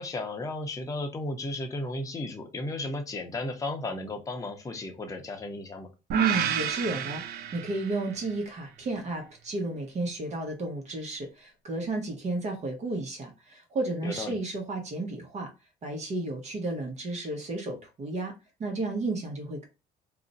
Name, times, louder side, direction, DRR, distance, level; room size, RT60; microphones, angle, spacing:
voice 1, 0.0-5.9 14.0-14.3, left 2 dB, 20° left, 0.7 m, -34 dB
voice 2, 6.1-15.5 15.8-18.3 18.6-19.7, right 3 dB, 40° right, 0.8 m, -32 dB
sound 1, 6.1-8.3, right 9 dB, 70° right, 0.4 m, -31 dB
2.4 x 2.0 x 3.8 m
cardioid pair, 110°, 17 cm